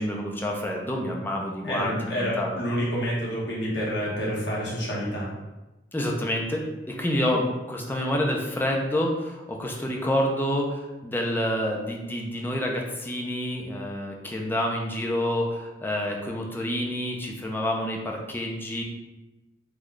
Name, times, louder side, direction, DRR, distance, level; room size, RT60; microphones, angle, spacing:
voice 1, 0.0-2.6 5.9-18.8, left 1 dB, 10° left, 0 dB, 0.4 m, -28 dB
voice 2, 1.6-5.3, equal, 75° left, -5 dB, 1.1 m, -28 dB
3.1 x 2.3 x 3.8 m, 1.1 s
head